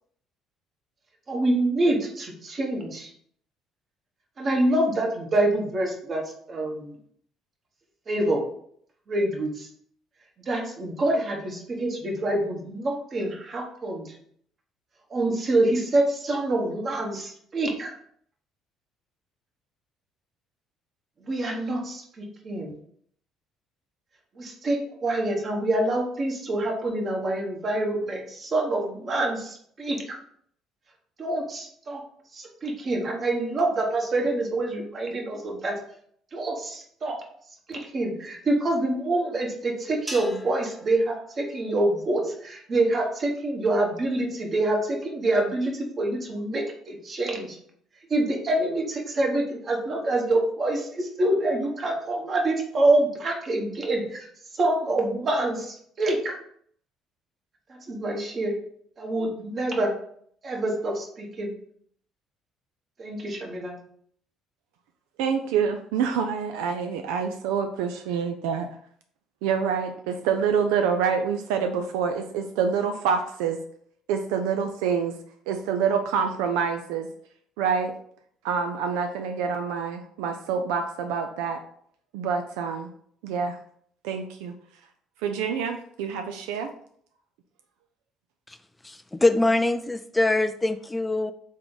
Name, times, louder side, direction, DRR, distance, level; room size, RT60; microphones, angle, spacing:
voice 1, 1.3-3.1 4.4-7.0 8.1-8.4 9.1-9.7 10.4-14.2 15.1-17.9 21.2-22.7 24.3-30.2 31.2-32.0 32.3-35.8 36.3-37.2 37.7-47.6 48.1-56.4 57.7-58.5 59.0-59.9 60.4-61.5 63.0-63.8, right 2 dB, 45° right, 1 dB, 1.3 m, -26 dB
sound 1, 40.1-42.5, equal, 10° right, 0.8 m, -42 dB
voice 2, 65.2-68.7 69.4-73.6 74.1-75.2 75.5-77.1 77.6-77.9 78.4-81.6 82.1-82.9 83.2-83.6 84.0-84.5 85.2-86.7, right 6 dB, 80° right, 6 dB, 0.3 m, -26 dB
voice 3, 88.8-91.3, left 2 dB, 15° left, 10 dB, 0.3 m, -23 dB
3.6 x 3.4 x 3.9 m, 0.63 s
hypercardioid pair, 60°, 0 cm